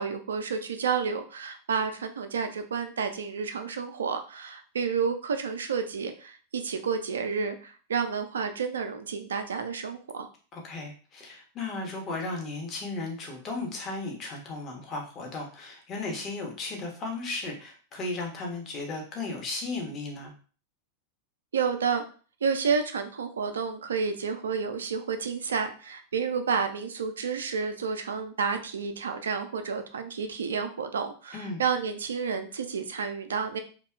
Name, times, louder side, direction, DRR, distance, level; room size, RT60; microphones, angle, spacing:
voice 1, 0.0-10.3 21.5-22.0 22.4-33.6, right 6 dB, 65° right, 8 dB, 0.3 m, -30 dB
voice 2, 10.5-20.3 31.3-31.6, left 3 dB, 30° left, 0 dB, 0.8 m, -35 dB
2.7 x 2.2 x 2.3 m, 0.39 s
figure-of-eight pair, 90°, 0 cm